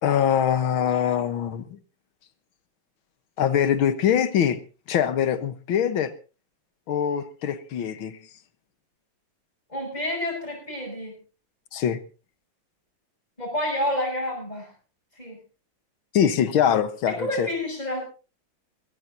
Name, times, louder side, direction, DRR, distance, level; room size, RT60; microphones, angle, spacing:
voice 1, 0.0-1.8 3.4-4.6 4.9-6.1 6.9-8.2 11.7-12.0 16.1-17.5, left 9 dB, 85° left, 12 dB, 2.0 m, -23 dB
voice 2, 9.7-11.2 13.4-14.7 15.2-15.4 17.1-18.0, left 1 dB, 20° left, -7 dB, 7.6 m, -29 dB
21.5 x 17.5 x 2.8 m, 0.34 s
omnidirectional pair, 2.2 m